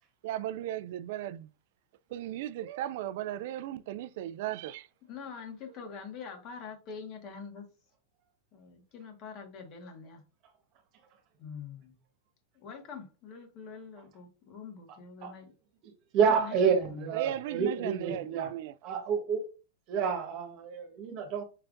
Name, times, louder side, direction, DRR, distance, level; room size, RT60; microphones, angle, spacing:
voice 1, 0.2-1.5 2.1-4.9 17.1-18.7, right 12 dB, 65° right, 0.3 m, -36 dB
voice 2, 5.0-7.6 8.5-10.2 11.4-12.0 12.5-15.5 16.2-17.1, left 6 dB, 40° left, 1.7 m, -45 dB
voice 3, 15.8-18.5 18.8-19.4 19.9-21.4, right 6 dB, 45° right, 1.3 m, -29 dB
5.6 x 3.4 x 2.6 m
hypercardioid pair, 130°, 0 cm